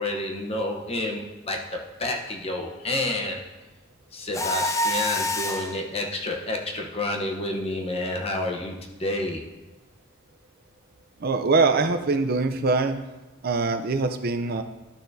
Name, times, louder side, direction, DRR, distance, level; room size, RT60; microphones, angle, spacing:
voice 1, 0.0-3.4 4.1-9.5, left 2 dB, 30° left, 1 dB, 0.8 m, -29 dB
Mechanisms, 4.3-5.8, left 1 dB, 15° left, 0.4 m, -26 dB
voice 2, 11.2-13.0 13.4-14.6, right 3 dB, 50° right, 8 dB, 0.5 m, -23 dB
11.5 x 6.5 x 2.7 m, 1.1 s
head